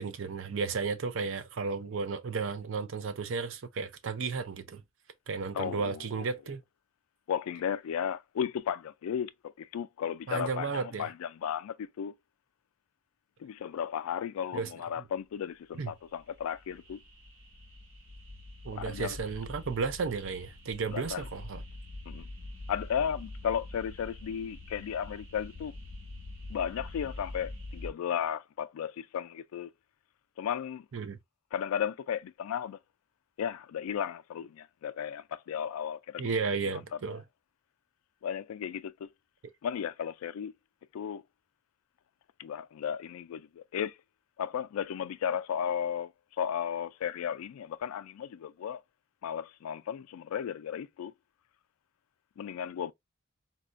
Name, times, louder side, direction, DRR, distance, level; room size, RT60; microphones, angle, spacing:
voice 1, 0.0-4.8 5.3-6.6 10.3-11.1 14.5-14.7 15.8-15.9 18.6-21.6 30.9-31.2 36.2-37.2, right 5 dB, 65° right, 0.5 m, -33 dB
voice 2, 5.5-6.3 7.3-12.1 13.4-17.0 18.7-19.2 20.9-21.2 22.1-22.3 22.7-25.7 26.5-29.7 30.4-30.9 31.5-32.8 33.4-36.3 38.2-39.1 39.6-40.5 40.9-41.2 42.4-44.0 44.4-46.1 46.4-48.8 49.2-51.1 52.4-52.9, left 8 dB, 85° left, 0.3 m, -34 dB
sound 1, 15.9-27.9, left 2 dB, 90° right, 1.3 m, -45 dB
4.1 x 2.2 x 2.4 m
head